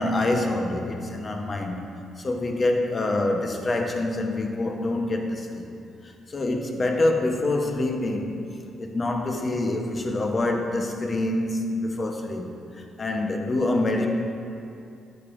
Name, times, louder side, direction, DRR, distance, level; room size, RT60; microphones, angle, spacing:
voice 1, 0.0-1.9 2.2-5.7 6.0-14.1, left 2 dB, 35° left, 3 dB, 0.8 m, -26 dB
9.4 x 6.9 x 2.5 m, 2.5 s
cardioid pair, 90°, 0 cm